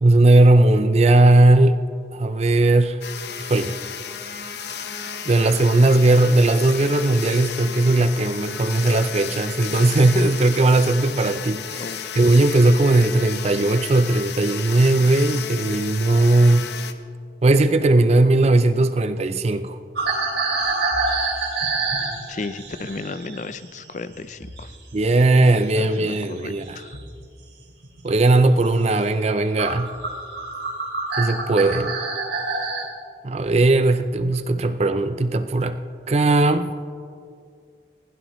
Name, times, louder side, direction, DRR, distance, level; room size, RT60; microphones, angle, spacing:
voice 1, 0.0-1.8 2.1-3.0 3.4-3.7 5.3-11.9 12.2-16.7 17.4-19.8 24.9-26.8 28.0-29.9 31.2-31.9 33.2-35.8 36.1-36.7, right 2 dB, 35° right, 11 dB, 0.5 m, -18 dB
sound 1, 3.0-16.9, left 7 dB, 70° left, 0.8 m, -33 dB
sound 2, 19.9-24.8 25.0-27.1 27.7-28.0 28.5-28.7 29.2-29.3 29.6-32.9, right 3 dB, 80° right, 2.7 m, -27 dB
voice 2, 22.3-24.7 25.8-27.0, left 3 dB, 45° left, 13 dB, 0.5 m, -34 dB
20.5 x 16.0 x 3.1 m, 2.2 s
head